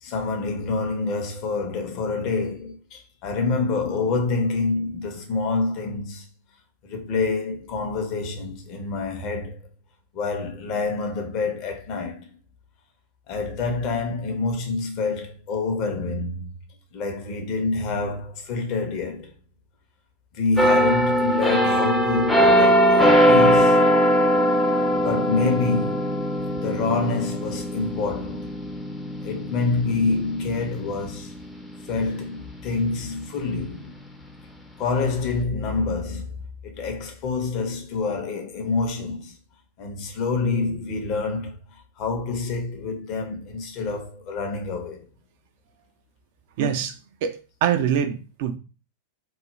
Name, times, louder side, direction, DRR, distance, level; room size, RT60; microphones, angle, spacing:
voice 1, 0.0-6.3 6.8-9.6 10.1-12.3 13.3-16.5 16.9-19.3 20.3-23.9 24.9-26.2 26.5-28.5 29.2-31.4 31.8-33.9 34.8-36.3 36.6-39.4 39.8-45.1, left 3 dB, 40° left, 0.7 m, -27 dB
sound 1, 20.6-32.1 32.5-32.8, equal, 5° left, 0.5 m, -21 dB
voice 2, 46.6-47.0 47.2-48.6, right 8 dB, 50° right, 0.4 m, -24 dB
2.4 x 2.1 x 3.0 m
figure-of-eight pair, 90°, 0 cm